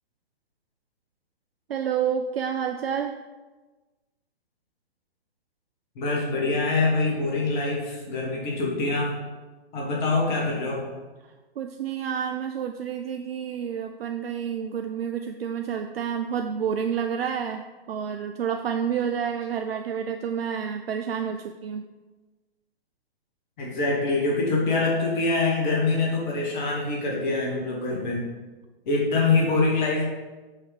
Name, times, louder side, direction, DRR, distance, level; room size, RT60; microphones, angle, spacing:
voice 1, 1.7-3.2 11.6-21.8, right 7 dB, 70° right, 6 dB, 0.5 m, -29 dB
voice 2, 6.0-9.1 9.7-10.8 23.6-28.3 28.9-30.0, left 3 dB, 50° left, -3 dB, 1.9 m, -24 dB
6.4 x 3.5 x 5.0 m, 1.2 s
figure-of-eight pair, 120°, 31 cm